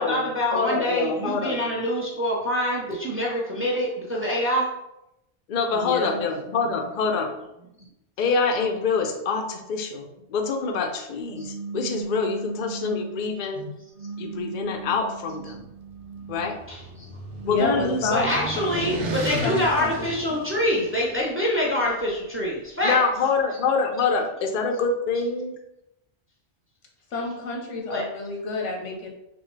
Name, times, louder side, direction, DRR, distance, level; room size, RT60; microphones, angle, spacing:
voice 1, 0.0-4.7 7.8-7.9 16.7-17.1 18.1-23.0 27.9-28.1, left 1 dB, 15° right, -3 dB, 0.7 m, -25 dB
voice 2, 0.5-1.6 5.5-7.3 8.2-13.6 14.2-15.7 16.3-16.6 17.4-18.3 22.8-25.5, left 4 dB, 55° left, 4 dB, 0.6 m, -26 dB
voice 3, 5.7-6.2 6.5-6.8 13.5-13.7 17.5-18.3 19.4-20.1 27.1-29.1, left 3 dB, 90° left, 1 dB, 1.2 m, -29 dB
sound 1, 11.3-13.3 13.9-16.6 17.2-19.5, right 5 dB, 30° right, 1.1 m, -38 dB
sound 2, 15.9-21.2, right 2 dB, 80° right, 1.0 m, -34 dB
6.0 x 2.3 x 3.2 m, 0.87 s
omnidirectional pair, 1.2 m